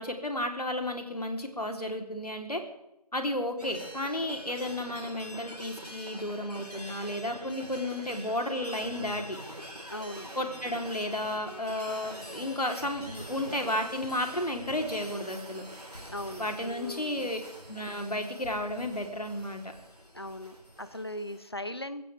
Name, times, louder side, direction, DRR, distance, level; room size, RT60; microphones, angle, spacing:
voice 1, 0.0-2.6 3.1-9.4 10.4-15.6 16.4-17.4 17.7-19.6, left 1 dB, 75° left, 4 dB, 3.6 m, -33 dB
sound 1, 3.6-21.5, equal, 75° right, 4.4 m, -45 dB
voice 2, 9.9-10.3 16.1-17.3 20.1-22.1, left 1 dB, 40° left, 13 dB, 0.9 m, -39 dB
21.0 x 16.5 x 3.5 m, 0.89 s
figure-of-eight pair, 175°, 20 cm